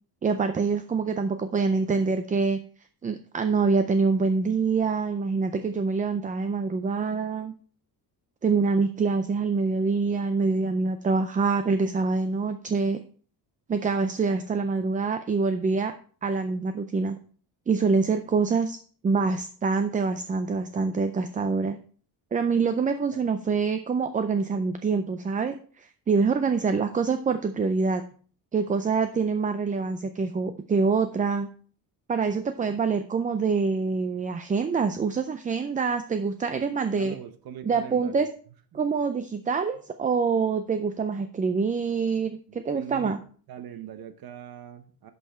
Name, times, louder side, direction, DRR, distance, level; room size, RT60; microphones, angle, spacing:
voice 1, 0.2-2.6 3.0-7.5 8.4-13.0 13.7-15.9 16.2-17.2 17.7-18.8 19.0-21.8 22.3-28.0 28.5-31.5 32.1-37.1 37.6-38.3 38.7-43.2, right 4 dB, 20° right, 9 dB, 0.4 m, -25 dB
voice 2, 37.0-38.3 38.7-38.8 42.5-43.2 43.5-45.1, right 8 dB, 60° right, 10 dB, 1.0 m, -41 dB
11.0 x 5.6 x 4.3 m, 0.43 s
cardioid pair, 165°, 40 cm